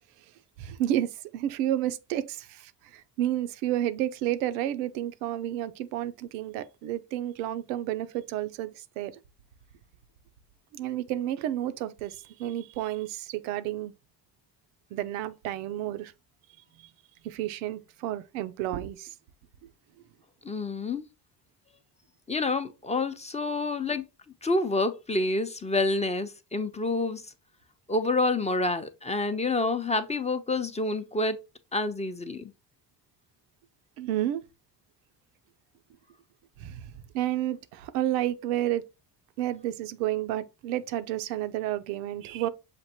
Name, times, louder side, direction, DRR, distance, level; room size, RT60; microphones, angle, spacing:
voice 1, 0.6-9.1 10.7-13.9 14.9-16.1 16.8-16.9 17.2-19.1 34.0-34.4 36.6-38.8 39.4-42.5, right 12 dB, 80° right, 0.6 m, -31 dB
voice 2, 20.4-21.1 22.3-24.0 24.4-27.3 27.9-31.4 31.7-32.5, left 2 dB, 15° left, 0.6 m, -28 dB
6.6 x 2.6 x 2.8 m
hypercardioid pair, 55°, 49 cm